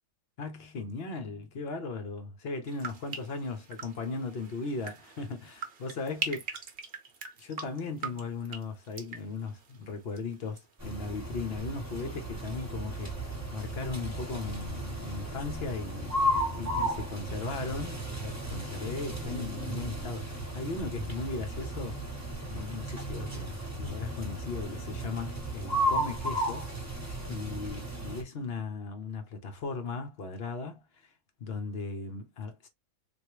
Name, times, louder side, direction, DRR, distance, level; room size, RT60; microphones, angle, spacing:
voice 1, 0.4-6.4 7.4-16.1 16.6-22.0 22.4-31.1 31.4-32.7, left 4 dB, 50° left, 0.9 m, -37 dB
sound 1, 2.7-10.6 10.9-11.4, right 4 dB, 50° right, 0.9 m, -42 dB
sound 2, 10.8-28.2, right 1 dB, 15° right, 0.9 m, -34 dB
3.4 x 2.6 x 2.9 m
omnidirectional pair, 1.5 m